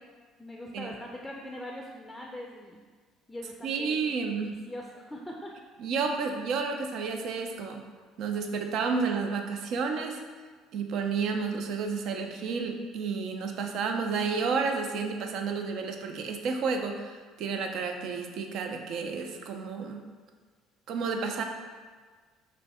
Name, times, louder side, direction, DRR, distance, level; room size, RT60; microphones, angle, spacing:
voice 1, 0.4-2.8 3.3-4.0 4.5-5.5, left 1 dB, 10° left, 0 dB, 0.4 m, -42 dB
voice 2, 3.6-4.6 5.8-7.8 8.2-10.2 10.7-20.0 20.9-21.4, right 5 dB, 60° right, 4 dB, 0.4 m, -31 dB
3.1 x 2.6 x 4.1 m, 1.5 s
hypercardioid pair, 65°, 0 cm